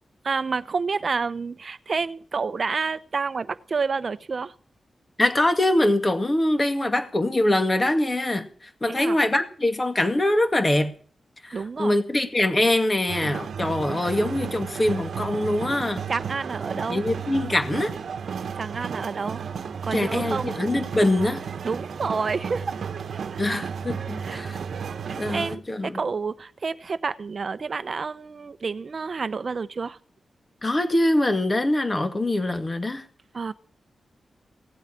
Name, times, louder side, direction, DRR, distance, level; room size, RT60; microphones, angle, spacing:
voice 1, 0.2-4.5 8.9-9.2 11.5-11.9 16.1-17.0 18.5-19.4 19.8-20.5 21.6-22.8 23.1-23.4 24.1-24.4 25.1-30.0 33.3-33.5, right 4 dB, 45° right, 14 dB, 0.8 m, -29 dB
voice 2, 5.2-8.5 8.8-10.9 11.4-16.0 16.9-17.9 19.9-21.4 23.4-24.6 25.1-26.0 30.6-33.0, left 1 dB, 25° left, 7 dB, 2.2 m, -23 dB
sound 1, 13.1-25.6, right 6 dB, 80° right, 1.2 m, -33 dB
17.5 x 8.0 x 10.0 m, 0.43 s
wide cardioid pair, 125°, 0 cm